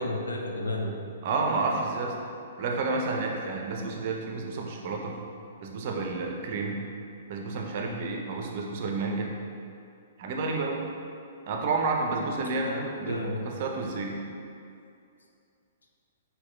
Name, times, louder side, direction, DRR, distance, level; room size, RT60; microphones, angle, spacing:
voice 1, 0.0-1.1 7.7-8.0 12.6-13.5, left 1 dB, 75° left, 1 dB, 0.3 m, -33 dB
voice 2, 1.2-2.2 2.6-5.2 5.6-6.8 7.3-9.3 10.2-10.8 11.5-14.2, right 3 dB, 45° right, 0 dB, 0.4 m, -30 dB
4.1 x 2.3 x 2.2 m, 2.5 s
figure-of-eight pair, 115°, 0 cm